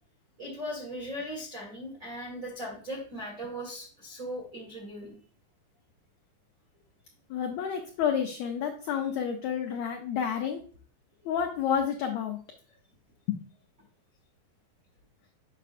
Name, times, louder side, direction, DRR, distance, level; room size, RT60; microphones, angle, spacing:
voice 1, 0.4-5.1, equal, 45° right, -4 dB, 1.1 m, -38 dB
voice 2, 7.3-10.6 11.2-12.4 13.3-13.4, left 8 dB, 80° left, 4 dB, 1.6 m, -30 dB
7.2 x 5.7 x 2.4 m, 0.43 s
omnidirectional pair, 3.9 m